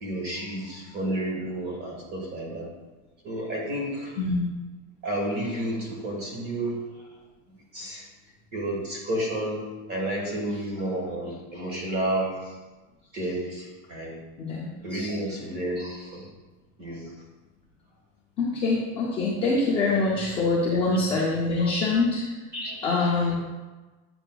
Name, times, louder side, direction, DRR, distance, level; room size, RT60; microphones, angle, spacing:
voice 1, 0.0-2.7 3.2-4.2 5.0-7.0 7.7-8.1 8.5-12.6 13.1-14.2 14.8-16.3 16.8-17.1 20.7-21.3 21.6-21.7 22.5-23.1, right 1 dB, 25° right, -1 dB, 1.4 m, -31 dB
voice 2, 4.2-4.5 14.4-15.1 18.4-22.2 22.8-23.4, left 3 dB, 15° left, -6 dB, 0.4 m, -25 dB
8.1 x 7.6 x 2.2 m, 1.2 s
cardioid pair, 180°, 43 cm